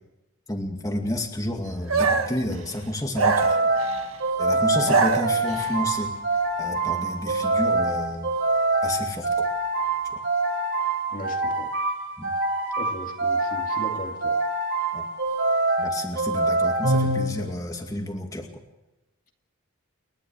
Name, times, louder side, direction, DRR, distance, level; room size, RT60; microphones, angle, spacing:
voice 1, 0.5-4.0 4.4-6.2 6.6-8.3 8.8-9.5 12.2-12.3 14.9-15.1 15.8-18.5, left 1 dB, 15° left, 2 dB, 2.3 m, -31 dB
sound 1, 1.9-2.4 3.1-4.1 4.7-5.7, right 4 dB, 70° right, 1.9 m, -23 dB
sound 2, 3.2-17.7, right 2 dB, 50° right, 4.1 m, -25 dB
voice 2, 11.1-11.7 12.8-14.4, left 1 dB, 35° left, 2 dB, 2.3 m, -37 dB
30.0 x 12.5 x 7.2 m, 0.99 s
head